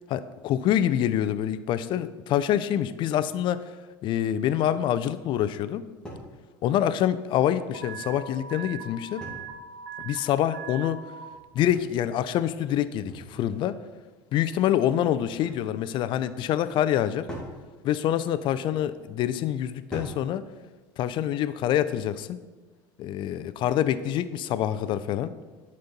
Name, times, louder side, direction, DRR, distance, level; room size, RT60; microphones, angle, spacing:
voice 1, 0.1-3.6 4.0-5.9 6.6-9.2 10.0-11.0 11.5-13.8 14.3-17.3 17.8-20.4 21.0-22.4 23.0-25.3, left 11 dB, 50° left, 14 dB, 0.5 m, -26 dB
sound 1, 6.0-6.3 7.7-8.3 9.2-9.7 11.3-11.9 13.1-13.6 15.0-15.6 17.3-17.6 18.6-18.9 19.9-20.3, equal, 5° left, 2.3 m, -42 dB
Alarm, 7.7-11.2, right 6 dB, 75° right, 1.9 m, -40 dB
7.9 x 4.3 x 5.2 m, 1.3 s
supercardioid pair, 90°, 10 cm